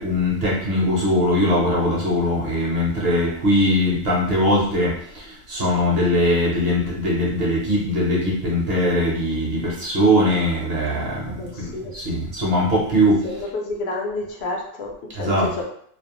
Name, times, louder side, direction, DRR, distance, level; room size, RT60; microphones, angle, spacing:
voice 1, 0.0-13.3 15.2-15.6, equal, 55° right, -4 dB, 0.8 m, -21 dB
voice 2, 11.3-11.9 13.2-15.6, left 2 dB, 65° left, 0 dB, 0.7 m, -30 dB
2.4 x 2.0 x 2.9 m, 0.65 s
omnidirectional pair, 1.4 m